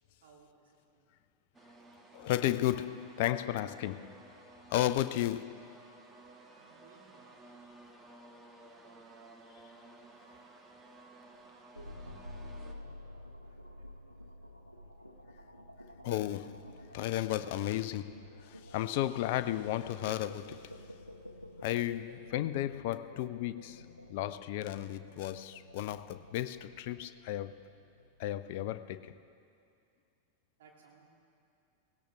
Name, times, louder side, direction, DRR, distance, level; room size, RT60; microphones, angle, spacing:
voice 1, 0.1-1.1 5.1-5.4 6.5-9.3 11.7-14.1 14.8-14.9 30.6-31.1, right 5 dB, 60° right, 2.5 m, -63 dB
sound 1, 1.5-12.7, right 2 dB, 15° right, 1.4 m, -55 dB
voice 2, 2.1-4.1 4.7-5.5 16.0-20.7 21.6-27.5 28.2-29.1, left 13 dB, 50° left, 0.4 m, -34 dB
sound 2, 11.8-29.0, left 1 dB, 90° left, 0.6 m, -51 dB
18.5 x 17.0 x 3.3 m
figure-of-eight pair, 90°, 0 cm